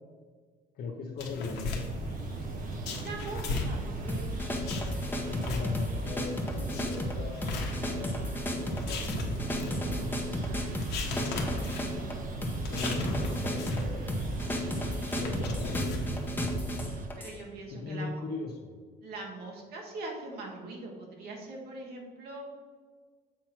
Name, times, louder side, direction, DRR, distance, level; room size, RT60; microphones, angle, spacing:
voice 1, 0.7-1.9 5.1-10.3 12.7-16.1 17.7-18.7, left 4 dB, 65° left, -2 dB, 0.8 m, -39 dB
sound 1, 1.2-16.8, left 3 dB, 85° left, 1.2 m, -39 dB
sound 2, 1.9-17.1, right 3 dB, 55° right, 0.7 m, -39 dB
voice 2, 2.9-4.3 17.2-18.2 19.0-22.5, right 2 dB, 70° right, 0 dB, 1.2 m, -42 dB
sound 3, 4.1-17.4, equal, 10° left, 0.9 m, -34 dB
7.3 x 3.0 x 5.7 m, 1.5 s
cardioid pair, 110°, 17 cm